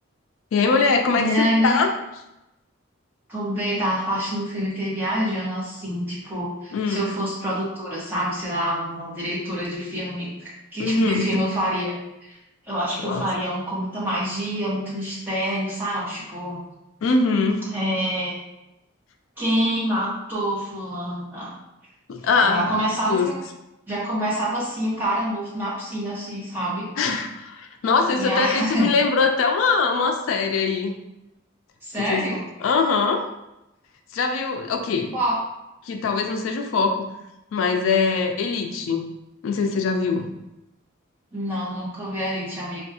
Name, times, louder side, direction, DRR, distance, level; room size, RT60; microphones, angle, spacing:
voice 1, 0.5-1.9 6.7-7.1 10.8-11.4 13.0-13.3 17.0-17.6 22.1-22.7 23.1-23.3 27.0-30.9 32.0-32.3 32.6-33.2 34.1-35.1 35.9-37.1 37.5-39.0 39.4-40.3, left 4 dB, 75° left, 5 dB, 0.3 m, -22 dB
voice 2, 1.1-1.9 3.3-11.9 12.2-12.4 12.7-16.6 17.7-18.3 19.4-21.5 22.4-23.4 23.9-26.9 28.1-28.9 31.8-32.4 34.9-35.4 41.3-42.8, equal, 10° right, -8 dB, 0.9 m, -26 dB
3.4 x 2.3 x 2.7 m, 0.91 s
head